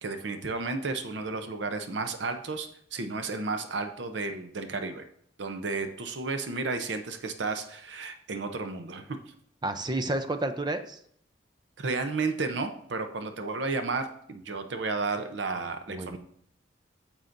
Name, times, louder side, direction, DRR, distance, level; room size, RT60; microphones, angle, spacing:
voice 1, 0.0-5.1 5.4-9.3 11.8-16.2, right 3 dB, 70° right, 7 dB, 0.7 m, -32 dB
voice 2, 9.6-11.0 15.9-16.2, right 2 dB, 25° right, 9 dB, 0.5 m, -30 dB
9.4 x 7.2 x 2.6 m, 0.66 s
head